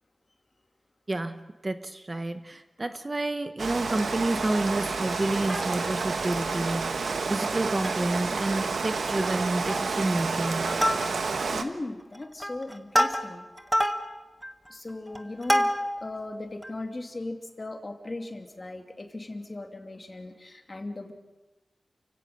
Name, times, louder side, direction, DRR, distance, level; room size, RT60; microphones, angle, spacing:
voice 1, 1.1-10.8, right 2 dB, 30° right, 9 dB, 1.1 m, -29 dB
Rain, 3.6-11.6, right 4 dB, 80° right, 1.3 m, -30 dB
sound 1, 3.9-6.8, left 4 dB, 80° left, 2.0 m, -45 dB
Plucked string instrument, 5.3-6.1 6.5-6.6 6.9-7.1 7.5-8.2 8.5-8.6 9.0-9.3 9.7-10.1 10.4-11.5 12.0-16.1 16.6-16.7, equal, ahead, 1.5 m, -28 dB
voice 2, 11.5-13.5 14.7-15.7 16.0-21.1, left 2 dB, 35° left, 4 dB, 2.5 m, -38 dB
29.5 x 16.5 x 6.7 m, 1.2 s
wide cardioid pair, 70°, 0 cm